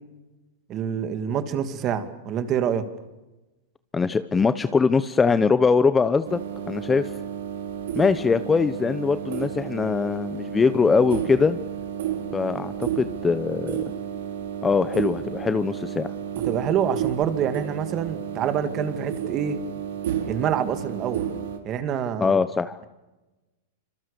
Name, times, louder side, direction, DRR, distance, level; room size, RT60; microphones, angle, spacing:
voice 1, 0.7-2.9 16.4-19.6 20.2-21.3 21.6-22.4, right 8 dB, 30° right, 10 dB, 2.5 m, -26 dB
voice 2, 3.9-6.4 6.7-7.1 7.9-11.6 12.3-13.8 14.6-16.1 22.2-22.8, left 5 dB, 10° left, 13 dB, 0.8 m, -22 dB
sound 1, 6.2-21.6, right 9 dB, 70° right, 4.5 m, -32 dB
27.0 x 26.0 x 6.9 m, 1.1 s
supercardioid pair, 155°, 0 cm